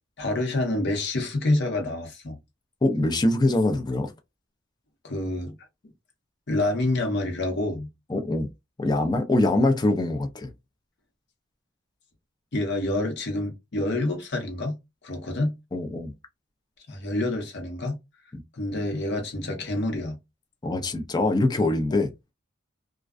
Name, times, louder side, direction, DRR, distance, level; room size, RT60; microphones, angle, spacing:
voice 1, 0.2-2.4 5.0-5.6 6.5-7.9 12.5-14.8 15.0-15.6 16.9-18.0 18.5-20.2 21.9-22.0, left 2 dB, 60° left, 0.9 m, -27 dB
voice 2, 2.8-4.1 8.1-8.5 8.8-10.5 15.7-16.1 18.3-18.4 20.6-22.1, left 2 dB, 20° left, 0.5 m, -23 dB
2.4 x 2.2 x 2.3 m
head